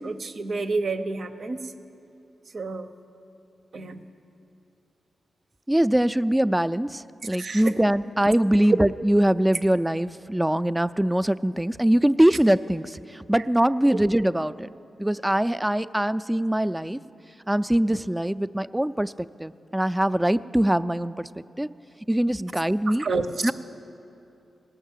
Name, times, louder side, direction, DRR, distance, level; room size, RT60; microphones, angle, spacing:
voice 1, 0.0-1.7 2.5-2.9 3.7-4.0 7.4-7.8 23.0-23.5, right 3 dB, 65° right, 9 dB, 0.7 m, -29 dB
voice 2, 5.7-14.7 15.0-17.0 17.5-19.1 19.4-21.3 21.6-21.7 22.1-23.1 23.4-23.5, right 1 dB, 10° right, 13 dB, 0.3 m, -22 dB
17.5 x 6.6 x 7.3 m, 2.8 s
supercardioid pair, 45°, 0 cm